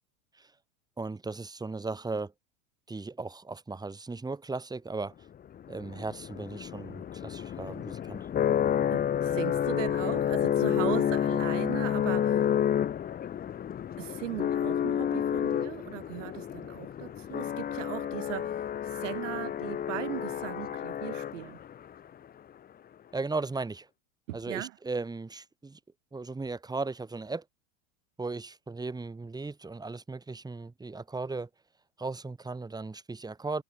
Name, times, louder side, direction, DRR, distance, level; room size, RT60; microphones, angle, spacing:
voice 1, 1.0-2.3 2.9-5.1 5.7-8.3 23.1-23.9 24.3-25.8 26.1-27.4 28.2-31.5 32.0-33.6, right 3 dB, 10° right, 3.5 m, -36 dB
sound 1, 5.5-21.8, left 9 dB, 25° left, 1.1 m, -30 dB
voice 2, 8.9-12.4 14.0-21.6 24.3-24.7, right 16 dB, 75° right, 2.3 m, -38 dB
hypercardioid pair, 110°, 38 cm